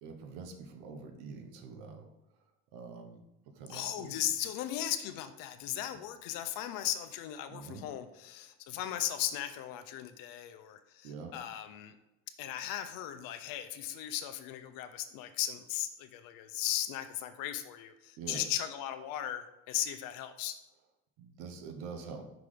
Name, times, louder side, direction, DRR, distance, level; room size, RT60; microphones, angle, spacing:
voice 1, 0.0-2.1 2.7-4.1 7.5-7.9 11.0-11.4 18.2-18.4 21.2-22.2, right 5 dB, 80° right, 6 dB, 1.0 m, -45 dB
voice 2, 3.7-11.9 12.4-20.6, left 12 dB, 70° left, 8 dB, 0.7 m, -37 dB
5.9 x 3.8 x 4.9 m, 0.93 s
supercardioid pair, 105°, 35 cm